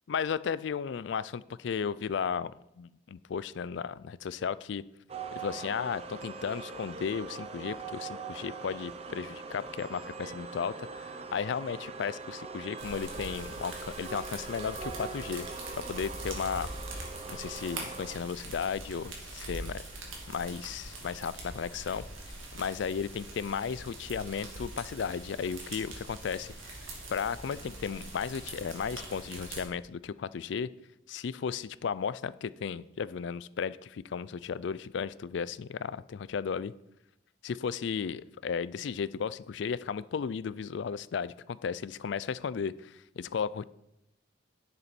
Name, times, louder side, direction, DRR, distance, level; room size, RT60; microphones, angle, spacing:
voice 1, 0.1-2.5 2.8-4.8 5.4-15.5 15.9-16.7 17.3-19.8 20.3-22.0 22.5-26.5 27.1-30.7 31.1-36.7 37.4-43.6, left 6 dB, 65° left, 18 dB, 0.4 m, -34 dB
sound 1, 5.1-18.2, right 4 dB, 30° right, 0.6 m, -42 dB
sound 2, 12.8-29.7, right 2 dB, 85° right, 2.1 m, -43 dB
10.0 x 6.8 x 4.4 m, 0.86 s
head